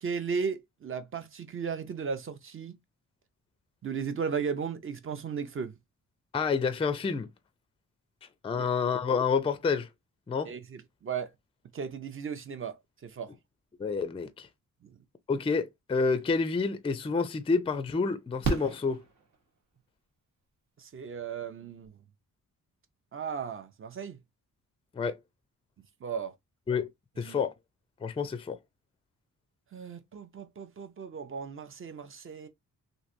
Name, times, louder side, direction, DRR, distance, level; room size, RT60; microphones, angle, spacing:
voice 1, 0.0-2.8 3.8-5.7 8.6-8.7 10.4-11.3 11.7-12.8 13.0-13.3 14.8-14.9 20.8-21.9 23.1-24.2 26.0-26.3 27.2-27.4 29.7-32.5, right 6 dB, 40° right, 0.5 m, -35 dB
voice 2, 6.3-7.3 8.4-9.9 10.3-10.5 13.8-14.5 15.3-19.0 25.0-25.2 26.7-26.9 27.2-27.5 28.0-28.6, left 5 dB, 15° left, 0.4 m, -28 dB
Fireworks, 16.8-16.9 18.4-19.8 21.5-21.6 21.8-21.9, right 3 dB, 70° right, 1.1 m, -33 dB
3.1 x 2.5 x 2.5 m
cardioid pair, 110°, 34 cm